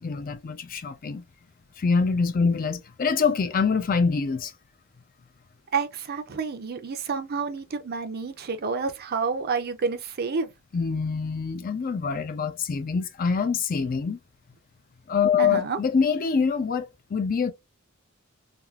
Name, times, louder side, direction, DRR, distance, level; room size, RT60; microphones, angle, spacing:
voice 1, 0.0-1.2 1.8-4.5 10.7-14.2 15.1-17.5, left 5 dB, 45° left, 0.4 m, -25 dB
voice 2, 5.7-10.5 15.4-15.8, right 5 dB, 50° right, 0.5 m, -29 dB
3.5 x 2.3 x 2.3 m
head